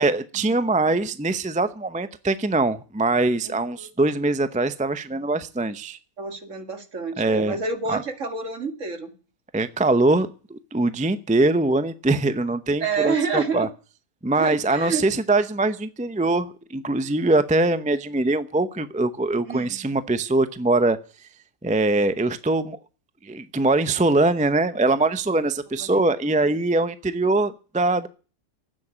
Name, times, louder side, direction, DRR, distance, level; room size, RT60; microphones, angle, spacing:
voice 1, 0.0-6.0 7.2-7.6 7.9-8.0 9.5-13.7 14.2-21.0 21.6-22.8 23.2-28.1, right 2 dB, 10° right, 0.4 m, -22 dB
voice 2, 3.4-3.9 6.2-9.1 12.8-13.7 14.4-15.0 19.5-19.8 25.8-26.1, right 4 dB, 55° right, 2.4 m, -29 dB
13.0 x 9.2 x 9.9 m
omnidirectional pair, 1.6 m